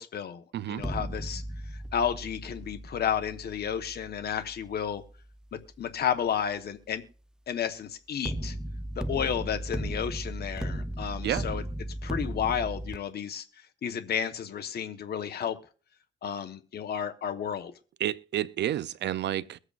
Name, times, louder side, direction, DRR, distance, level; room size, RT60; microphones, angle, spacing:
voice 1, 0.0-1.4 1.7-5.0 5.5-7.0 7.5-8.5 9.0-11.6 12.0-13.4 13.8-15.6 16.2-17.7, left 8 dB, 55° left, 1.1 m, -32 dB
sound 1, 0.8-5.8 8.2-13.0, right 1 dB, 5° right, 0.6 m, -36 dB
voice 2, 18.0-19.6, right 12 dB, 60° right, 0.4 m, -30 dB
22.5 x 8.0 x 2.4 m
cardioid pair, 90°, 20 cm